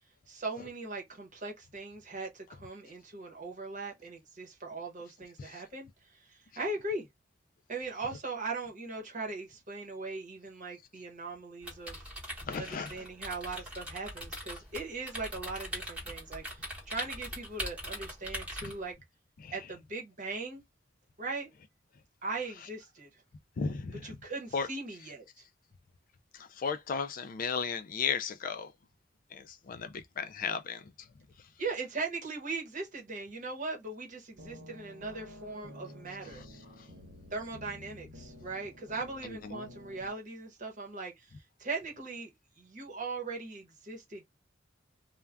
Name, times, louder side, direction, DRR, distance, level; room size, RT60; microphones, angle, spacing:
voice 1, 0.3-5.9 6.3-7.1 7.7-12.0 12.6-19.0 19.5-20.6 21.2-21.5 22.2-23.1 24.0-25.2 31.6-36.4 37.3-41.3 41.6-42.3 42.6-44.2, right 3 dB, 40° right, 0.9 m, -39 dB
sound 1, 11.6-18.9, equal, 5° right, 1.0 m, -42 dB
voice 2, 12.5-13.0 18.6-18.7 19.4-19.6 23.6-24.2 24.5-24.7 26.3-28.7 29.3-31.1 36.3-36.4 36.8-36.9 39.2-39.7, left 5 dB, 45° left, 0.4 m, -35 dB
sound 2, 34.4-40.1, left 1 dB, 75° right, 0.9 m, -50 dB
2.4 x 2.2 x 3.3 m
head